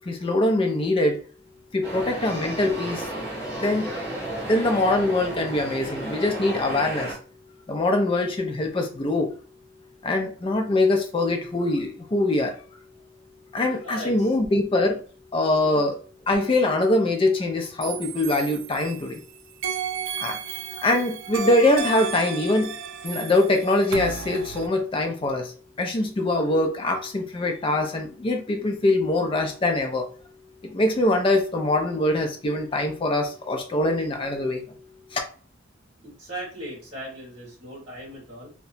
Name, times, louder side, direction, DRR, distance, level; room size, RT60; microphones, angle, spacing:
voice 1, 0.1-1.2 1.7-3.1 3.5-3.9 4.5-7.2 7.7-9.3 10.0-12.5 13.5-15.0 15.3-16.0 16.3-19.2 20.2-20.4 20.8-22.7 23.0-25.5 25.8-30.0 30.6-34.6 35.1-35.2, left 2 dB, 25° left, 3 dB, 0.4 m, -23 dB
sound 1, 1.8-7.1, right 1 dB, ahead, 1.4 m, -33 dB
voice 2, 13.8-14.3 15.5-15.8 36.0-38.5, right 1 dB, 30° right, -5 dB, 1.4 m, -38 dB
sound 2, 17.8-19.2 19.6-24.7, right 7 dB, 75° right, 0.3 m, -33 dB
2.8 x 2.2 x 2.5 m, 0.40 s
head